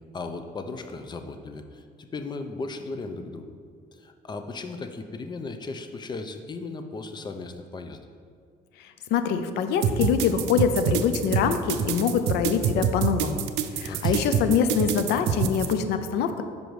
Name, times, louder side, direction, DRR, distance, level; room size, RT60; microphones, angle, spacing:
voice 1, 0.1-3.5 3.9-8.0 13.8-14.1, left 3 dB, 25° left, 7 dB, 0.5 m, -36 dB
voice 2, 9.1-13.5 13.8-16.4, left 7 dB, 80° left, 9 dB, 0.5 m, -24 dB
sound 1, 9.8-15.7, right 8 dB, 85° right, 0.4 m, -26 dB
5.2 x 5.0 x 4.7 m, 2.1 s
cardioid pair, 110°, 17 cm